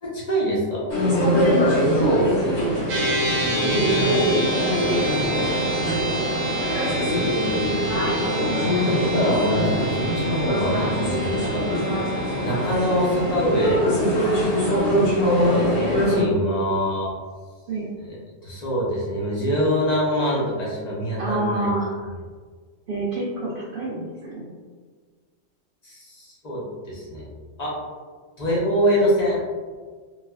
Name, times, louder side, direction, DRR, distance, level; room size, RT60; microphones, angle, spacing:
voice 1, 0.0-0.9 8.3-11.6 12.4-13.9 15.3-17.1 18.0-18.2 18.4-21.7 25.8-27.3 27.6-27.7 28.4-29.4, equal, 45° left, -6 dB, 0.5 m, -25 dB
sound 1, 0.9-16.2, equal, 90° left, 1.5 m, -23 dB
voice 2, 2.0-2.8 3.7-5.1 5.7-6.4 17.7-17.9 21.2-22.0 22.9-24.5, right 2 dB, 60° right, -5 dB, 0.6 m, -27 dB
sound 2, 2.9-13.7, right 1 dB, 75° right, 1.0 m, -29 dB
3.2 x 2.2 x 2.2 m, 1.5 s
omnidirectional pair, 1.3 m